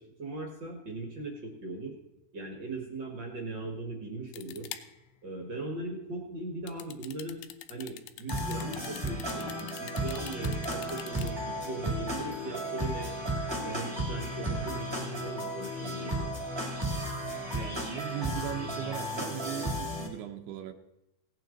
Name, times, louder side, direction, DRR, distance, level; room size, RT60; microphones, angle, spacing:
voice 1, 0.0-1.9 2.3-4.7 5.2-7.4 7.7-9.5 9.8-13.1 13.5-16.3, right 2 dB, 50° right, 2 dB, 1.4 m, -39 dB
sound 1, 4.3-5.1 6.7-11.3, left 11 dB, 85° left, 2.7 m, -46 dB
sound 2, 8.3-20.1, equal, 15° right, 1.1 m, -34 dB
voice 2, 17.5-20.7, right 10 dB, 85° right, 4 dB, 2.8 m, -38 dB
17.0 x 9.1 x 3.9 m, 0.93 s
omnidirectional pair, 4.5 m